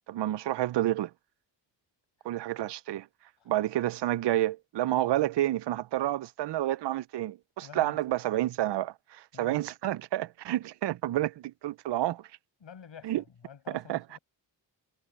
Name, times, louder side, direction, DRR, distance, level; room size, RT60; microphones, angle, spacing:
voice 1, 0.1-1.1 2.2-3.1 3.5-12.3 13.0-13.2 13.7-14.2, right 14 dB, 65° right, 0.5 m, -29 dB
voice 2, 7.6-8.0 9.3-9.7 12.6-14.2, left 7 dB, 75° left, 5.8 m, -49 dB
wide cardioid pair, 105°, 45 cm